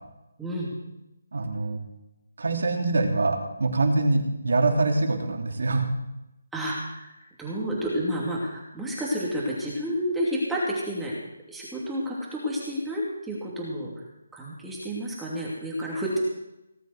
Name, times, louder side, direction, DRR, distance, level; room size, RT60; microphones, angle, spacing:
voice 1, 0.4-0.7 6.5-11.1 11.5-13.9 14.3-16.2, equal, 5° right, -6 dB, 2.8 m, -30 dB
voice 2, 1.3-1.8 2.4-5.8, right 3 dB, 75° right, 3 dB, 3.2 m, -24 dB
18.5 x 8.1 x 8.0 m, 0.91 s
figure-of-eight pair, 160°, 0 cm